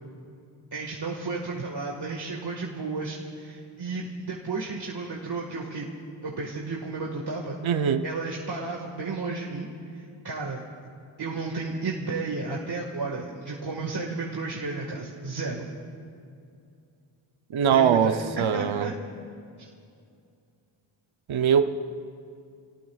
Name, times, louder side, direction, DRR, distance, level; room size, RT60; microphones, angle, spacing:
voice 1, 0.7-5.9 6.2-7.6 8.0-10.6 11.2-15.7 17.7-18.9 19.6-19.7, right 3 dB, 55° right, -2 dB, 1.9 m, -33 dB
voice 2, 7.6-8.0 17.5-18.9 21.3-21.9, right 7 dB, 70° right, 8 dB, 0.8 m, -22 dB
28.5 x 18.5 x 2.4 m, 2.4 s
cardioid pair, 55°, 49 cm